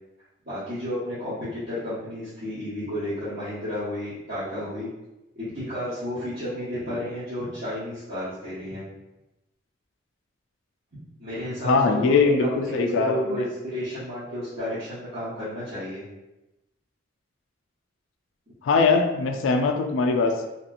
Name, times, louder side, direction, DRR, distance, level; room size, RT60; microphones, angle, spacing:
voice 1, 0.4-4.9 5.3-8.8 10.9-16.0, equal, 45° right, -14 dB, 1.1 m, -32 dB
voice 2, 11.6-13.4 18.6-20.5, left 4 dB, 80° left, 5 dB, 0.3 m, -21 dB
2.9 x 2.8 x 2.4 m, 0.98 s
head